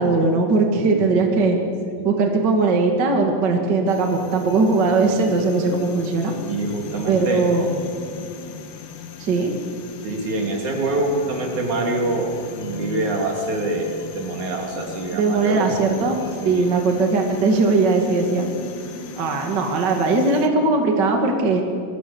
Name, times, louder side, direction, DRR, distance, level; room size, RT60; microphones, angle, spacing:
voice 1, 0.0-1.6 2.0-6.3 7.1-7.6 9.2-9.5 15.1-18.5 19.2-21.6, right 3 dB, 35° right, 2 dB, 2.4 m, -19 dB
sound 1, 3.9-20.5, left 5 dB, 75° left, 2.9 m, -38 dB
voice 2, 6.4-7.5 10.0-15.7 16.4-16.7, right 2 dB, 65° right, 1 dB, 4.4 m, -25 dB
28.0 x 22.0 x 7.1 m, 2.4 s
omnidirectional pair, 3.7 m